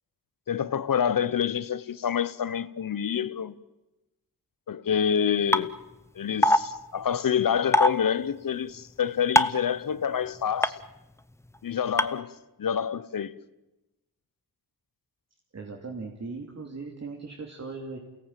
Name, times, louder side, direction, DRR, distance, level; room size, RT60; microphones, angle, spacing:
voice 1, 0.5-3.5 4.7-5.8 6.1-10.8 11.6-12.3 12.6-13.4, left 8 dB, 65° left, 1.0 m, -27 dB
sound 1, 5.5-5.6 6.4-6.6 7.7-7.9 9.4-9.6 10.6-10.7 12.0-12.1, left 1 dB, 10° left, 0.8 m, -18 dB
voice 2, 15.5-18.0, right 4 dB, 45° right, 3.1 m, -38 dB
29.0 x 18.0 x 9.1 m
wide cardioid pair, 115°, 35 cm